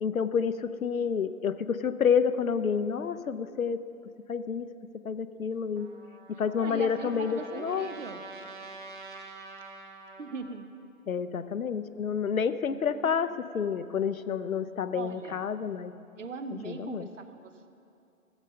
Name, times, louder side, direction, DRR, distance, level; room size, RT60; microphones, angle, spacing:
voice 1, 0.0-3.8 4.3-4.7 5.0-5.9 6.4-7.9 11.1-15.9 16.6-17.1, left 6 dB, 70° left, 12 dB, 0.7 m, -29 dB
Trumpet, 5.7-10.4, right 3 dB, 35° right, 1.0 m, -46 dB
voice 2, 6.6-8.2 10.2-10.7 14.9-15.4 16.2-17.7, right 4 dB, 60° right, 9 dB, 0.9 m, -39 dB
15.0 x 7.1 x 5.5 m, 2.6 s
figure-of-eight pair, 140°, 43 cm